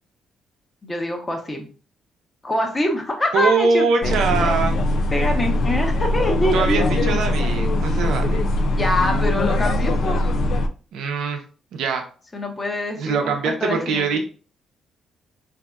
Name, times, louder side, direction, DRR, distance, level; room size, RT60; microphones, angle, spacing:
voice 1, 0.8-1.7 2.4-4.5 5.1-7.1 8.7-10.2 12.3-13.3 13.6-14.2, left 1 dB, 25° left, 3 dB, 0.9 m, -25 dB
voice 2, 3.3-4.8 6.5-8.4 10.9-11.4 11.7-12.0 13.0-14.2, right 5 dB, 80° right, 4 dB, 0.7 m, -22 dB
sound 1, 4.0-10.7, left 1 dB, 65° left, 0.4 m, -21 dB
4.0 x 2.7 x 2.3 m, 0.39 s
cardioid pair, 90°, 0 cm